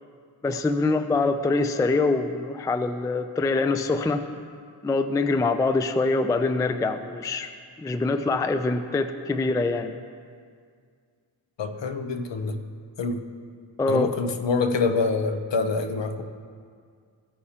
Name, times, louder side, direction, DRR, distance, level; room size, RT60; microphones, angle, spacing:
voice 1, 0.4-4.3 4.8-7.5 7.8-10.0 13.8-14.1, left 3 dB, 10° left, 9 dB, 0.3 m, -24 dB
voice 2, 11.6-12.6 13.0-13.3 13.9-16.2, left 4 dB, 60° left, 8 dB, 0.8 m, -26 dB
16.5 x 6.5 x 2.8 m, 2.1 s
wide cardioid pair, 80°, 48 cm